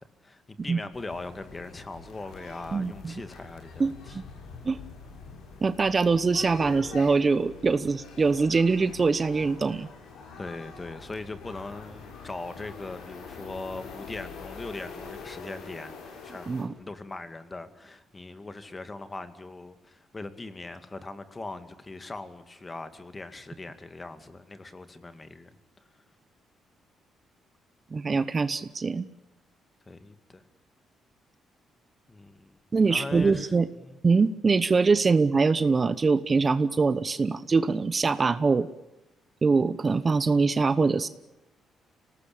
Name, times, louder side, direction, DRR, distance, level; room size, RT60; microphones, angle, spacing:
voice 1, 0.2-4.2 10.4-16.0 16.2-16.5 16.8-25.5 29.9-30.4 32.1-32.6 32.9-33.5 33.8-34.0, left 2 dB, 25° left, 10 dB, 2.3 m, -40 dB
sound 1, 0.9-16.7, left 5 dB, 85° left, 6.5 m, -45 dB
voice 2, 2.7-3.1 3.8-4.2 4.6-4.8 5.6-9.9 16.5-16.7 27.9-29.0 32.7-33.7 34.0-38.7 39.4-41.1, right 4 dB, 35° right, 13 dB, 1.0 m, -23 dB
25.5 x 19.0 x 8.8 m, 0.93 s
cardioid pair, 90°, 0 cm